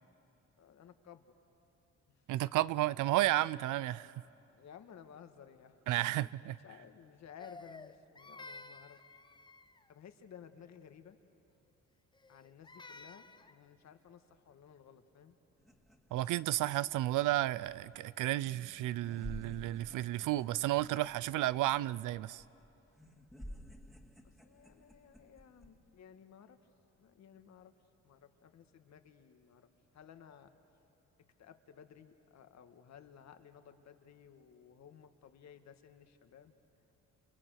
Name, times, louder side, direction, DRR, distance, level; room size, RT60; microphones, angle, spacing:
voice 1, 0.6-1.2 2.2-2.3 4.5-9.0 9.9-11.2 12.3-15.4 24.2-26.6 27.0-27.7 28.0-29.7 29.9-30.5 31.4-36.6, left 8 dB, 65° left, 1.7 m, -56 dB
voice 2, 2.3-4.1 5.9-6.6 16.1-22.4, right 15 dB, 85° right, 0.5 m, -32 dB
Crying sobbing, 7.4-9.9 12.1-13.6, left 3 dB, 15° left, 0.7 m, -52 dB
sound 1, 15.6-25.8, left 1 dB, ahead, 2.4 m, -53 dB
30.0 x 30.0 x 6.5 m
cardioid pair, 90°, 30 cm